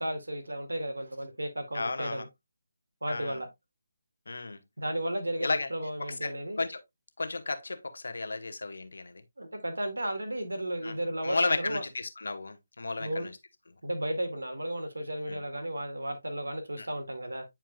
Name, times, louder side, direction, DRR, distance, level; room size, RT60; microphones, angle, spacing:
voice 1, 0.0-2.3 3.0-3.5 4.8-6.7 9.4-11.8 13.0-13.3 13.8-17.4, right 1 dB, 80° right, 2.0 m, -34 dB
voice 2, 1.7-2.3 3.1-3.4 4.3-4.6 5.4-5.7 6.2-6.8 7.2-9.2 10.8-10.9 11.2-13.3 15.3-15.4 16.8-16.9, left 3 dB, 70° left, 1.1 m, -33 dB
9.1 x 4.5 x 2.3 m
figure-of-eight pair, 155°, 0 cm